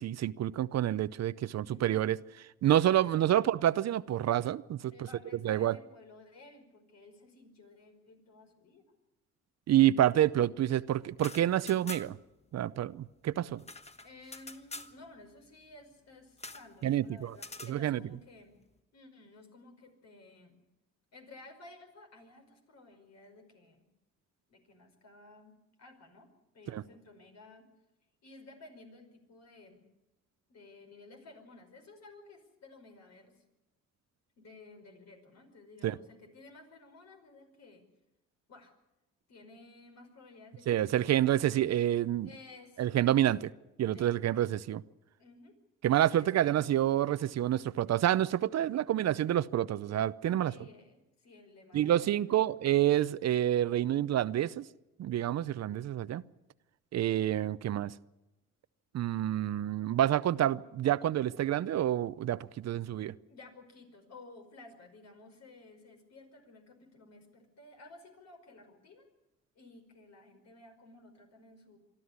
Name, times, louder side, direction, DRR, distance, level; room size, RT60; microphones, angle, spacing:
voice 1, 0.0-2.2 2.6-4.9 5.4-5.8 9.7-12.2 12.5-13.6 16.8-17.3 17.7-18.0 26.7-26.8 35.8-35.9 40.7-42.3 42.8-43.5 43.8-44.8 45.8-50.5 51.7-54.7 55.0-56.2 56.9-57.9 58.9-63.1, right 12 dB, 60° right, 0.7 m, -28 dB
voice 2, 1.6-2.0 3.0-3.5 4.9-8.9 14.0-18.6 18.9-20.5 21.1-23.9 24.5-26.3 26.5-27.7 28.2-29.9 30.5-33.4 34.4-37.9 38.5-38.7 39.3-41.5 42.2-43.0 43.9-44.4 45.2-45.5 46.1-46.6 48.6-48.7 50.4-52.5 63.3-69.1 69.6-71.8, left 2 dB, 60° left, 5.2 m, -55 dB
sound 1, 11.1-12.3 12.6-12.7 12.9-14.9 16.4-16.7 17.3-17.8, left 2 dB, 20° left, 1.3 m, -46 dB
24.0 x 13.0 x 9.6 m
cardioid pair, 90°, 30 cm